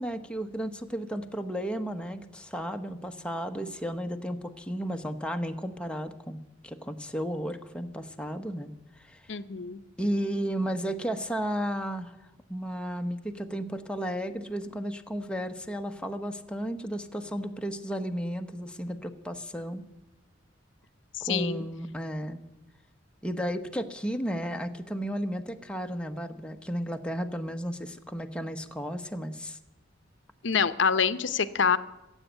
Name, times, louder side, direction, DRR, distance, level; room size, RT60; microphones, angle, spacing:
voice 1, 0.0-9.2 10.0-12.1 12.5-19.8 21.2-22.4 23.2-29.6, equal, 5° left, 6 dB, 0.9 m, -33 dB
voice 2, 9.3-9.8 21.2-21.6 30.4-31.8, left 6 dB, 70° left, 14 dB, 0.7 m, -26 dB
15.5 x 8.1 x 9.1 m, 1.1 s
head